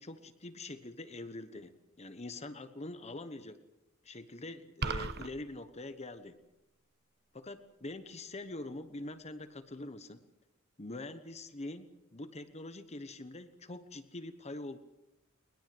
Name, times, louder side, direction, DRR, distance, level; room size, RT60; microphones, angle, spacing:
voice 1, 0.0-3.6 4.0-6.4 7.3-10.2 10.8-14.8, left 2 dB, 30° left, 10 dB, 1.2 m, -44 dB
sound 1, 4.8-5.3, right 4 dB, 50° right, 1.2 m, -34 dB
21.5 x 21.0 x 7.9 m, 0.94 s
head